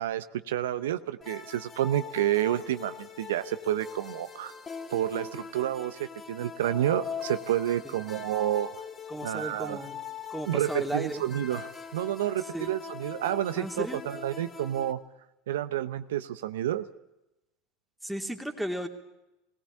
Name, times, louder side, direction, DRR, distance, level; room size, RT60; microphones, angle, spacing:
voice 1, 0.0-4.5 4.9-8.7 9.2-9.8 10.5-15.0 15.5-16.9, right 12 dB, 85° right, 11 dB, 0.8 m, -29 dB
sound 1, 1.2-14.9, left 6 dB, 30° left, 2.1 m, -42 dB
voice 2, 9.1-10.0 10.3-11.2 12.5-12.7 13.5-14.0 18.0-18.9, right 1 dB, ahead, 2 dB, 2.8 m, -34 dB
19.0 x 17.5 x 8.4 m, 0.92 s
hypercardioid pair, 90°, 0 cm